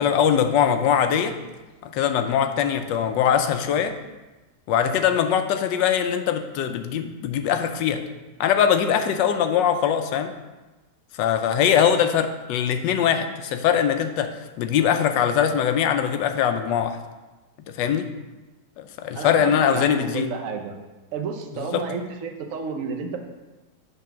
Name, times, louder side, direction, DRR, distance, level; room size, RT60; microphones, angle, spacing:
voice 1, 0.0-1.3 1.8-4.0 4.7-8.0 8.4-10.3 11.1-17.0 17.7-18.1 18.8-20.3 21.6-21.8, left 8 dB, 90° left, 8 dB, 1.3 m, -22 dB
voice 2, 19.1-20.8 21.1-23.2, right 5 dB, 55° right, 3 dB, 1.0 m, -31 dB
8.3 x 3.8 x 5.8 m, 1.1 s
omnidirectional pair, 1.9 m